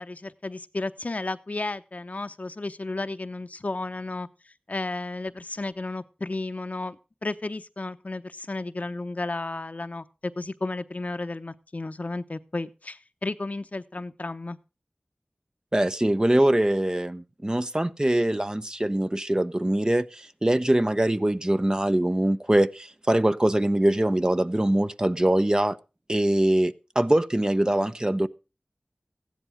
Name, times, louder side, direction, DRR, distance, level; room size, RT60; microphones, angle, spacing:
voice 1, 0.0-14.6, left 2 dB, 60° left, 0.9 m, -33 dB
voice 2, 15.7-25.8 26.1-28.3, right 1 dB, 30° right, 0.9 m, -23 dB
15.5 x 10.5 x 4.9 m
wide cardioid pair, 45°, 3 cm